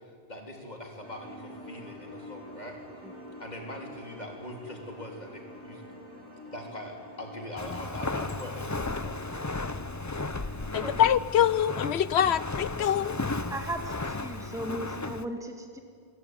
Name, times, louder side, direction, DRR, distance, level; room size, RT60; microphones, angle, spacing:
voice 1, 0.3-2.8 3.4-5.8 6.5-9.1 10.7-11.0, left 1 dB, 40° left, 1 dB, 3.7 m, -42 dB
sound 1, 1.0-11.0, equal, 60° right, 4.9 m, -47 dB
Walk footsteps, 7.6-15.3, left 3 dB, 20° left, 0.7 m, -34 dB
voice 2, 10.7-13.2, left 9 dB, 85° left, 17 dB, 1.0 m, -24 dB
voice 3, 13.5-15.8, right 1 dB, 5° right, 4 dB, 1.8 m, -36 dB
25.5 x 16.5 x 9.5 m, 2.2 s
omnidirectional pair, 1.1 m